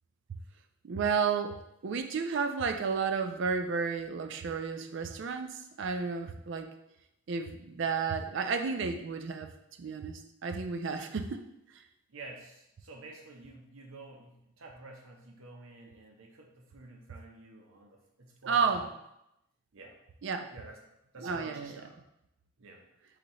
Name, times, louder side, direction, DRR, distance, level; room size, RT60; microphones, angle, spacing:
voice 1, 0.8-6.7 7.3-9.5 9.8-11.4 11.7-11.8 18.5-18.9 20.2-20.5 21.2-21.8, right 5 dB, 60° right, 7 dB, 0.4 m, -32 dB
voice 2, 12.1-18.9 19.7-20.0 20.5-20.8 21.1-22.0 22.6-22.8, right 2 dB, 75° right, 2 dB, 0.8 m, -50 dB
4.0 x 2.8 x 4.3 m, 0.84 s
head